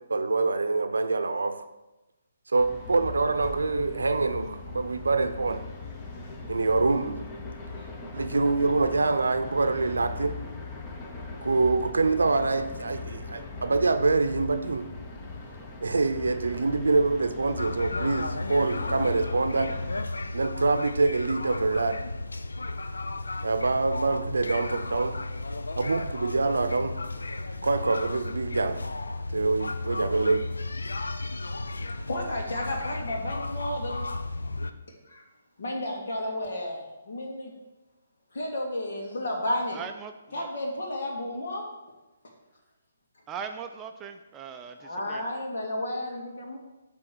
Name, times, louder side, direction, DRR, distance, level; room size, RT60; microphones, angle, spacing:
voice 1, 0.1-1.6 2.5-5.6 6.5-7.2 8.1-10.3 11.4-14.8 15.8-19.7 20.3-22.0 23.4-25.2 25.8-26.9 27.6-28.8 29.3-30.4, right 3 dB, 85° right, 9 dB, 0.6 m, -25 dB
sound 1, 2.6-20.0, left 3 dB, 20° left, 1.0 m, -40 dB
sound 2, 17.6-34.7, left 2 dB, 85° left, 0.5 m, -34 dB
voice 2, 31.5-34.0 35.0-35.3 35.6-37.5 38.3-39.8 40.3-41.7 44.8-46.6, left 1 dB, 65° left, 0 dB, 2.0 m, -32 dB
voice 3, 39.7-40.5 43.3-45.2, right 7 dB, 15° right, 5 dB, 0.4 m, -39 dB
7.7 x 3.5 x 6.2 m, 1.0 s
hypercardioid pair, 145°, 0 cm